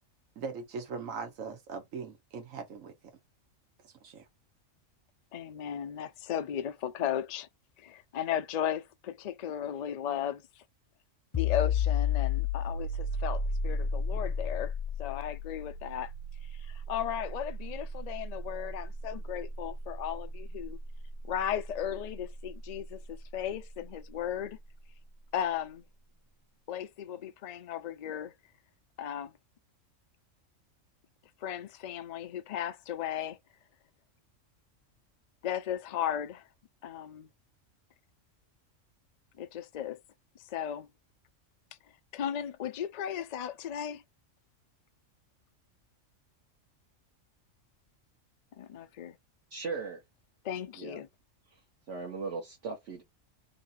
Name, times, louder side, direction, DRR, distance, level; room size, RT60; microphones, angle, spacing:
voice 1, 0.4-2.9 3.8-4.2, right 5 dB, 90° right, 1.3 m, -40 dB
voice 2, 5.3-7.5 7.8-10.6 11.3-14.7 15.0-16.1 16.4-20.8 21.3-24.6 25.3-25.8 26.7-28.3 29.0-29.3 31.4-33.4 35.4-36.5 36.8-37.3 39.4-40.0 40.4-40.9 42.1-44.0 48.6-49.2 50.4-51.1, left 9 dB, 85° left, 0.3 m, -36 dB
sound 1, 11.3-22.8, left 5 dB, 30° left, 0.6 m, -33 dB
voice 3, 49.5-50.0 50.8-51.0 51.5-51.6 51.9-53.0, right 4 dB, 65° right, 1.1 m, -38 dB
3.0 x 2.8 x 4.0 m
omnidirectional pair, 1.3 m